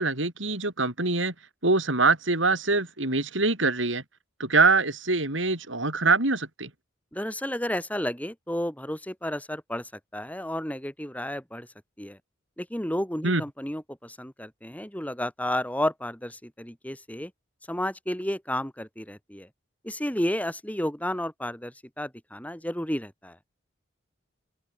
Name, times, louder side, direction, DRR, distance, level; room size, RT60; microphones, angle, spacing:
voice 1, 0.0-1.3 1.6-4.0 4.4-6.7 13.2-13.4, right 3 dB, 85° right, 6.0 m, -24 dB
voice 2, 7.1-11.7 12.0-12.2 12.6-17.3 17.7-19.5 19.8-23.4, left 1 dB, 10° left, 4.5 m, -32 dB
open air
head